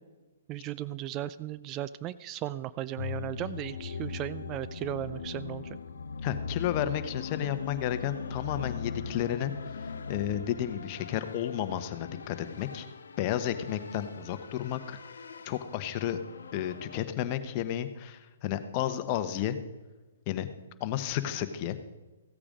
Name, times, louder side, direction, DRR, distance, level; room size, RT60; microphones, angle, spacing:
voice 1, 0.5-5.8, right 13 dB, 30° right, 16 dB, 0.3 m, -36 dB
sound 1, 3.0-17.0, left 5 dB, 80° left, 0.8 m, -40 dB
voice 2, 6.2-9.5 9.8-12.9 13.2-15.0 15.4-16.2 16.5-19.6 20.3-20.5 20.8-21.8, left 11 dB, 35° left, 10 dB, 1.0 m, -32 dB
15.5 x 8.6 x 5.1 m, 1.2 s
hypercardioid pair, 135°, 0 cm